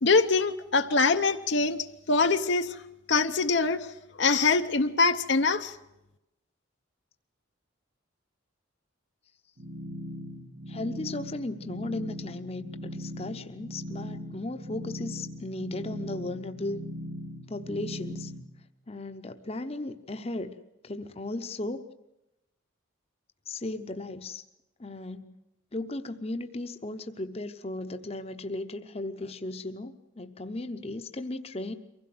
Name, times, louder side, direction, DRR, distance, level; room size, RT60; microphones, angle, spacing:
voice 1, 0.0-2.8 3.1-3.9 4.2-5.8, left 4 dB, 55° left, 7 dB, 0.7 m, -24 dB
sound 1, 9.6-18.4, equal, 85° right, 2.0 m, -39 dB
voice 2, 10.7-16.9 17.5-18.3 18.9-20.5 20.8-21.9 23.5-24.4 24.8-25.4 25.7-31.7, left 2 dB, 30° left, 8 dB, 0.9 m, -36 dB
24.0 x 16.0 x 7.8 m, 0.91 s
head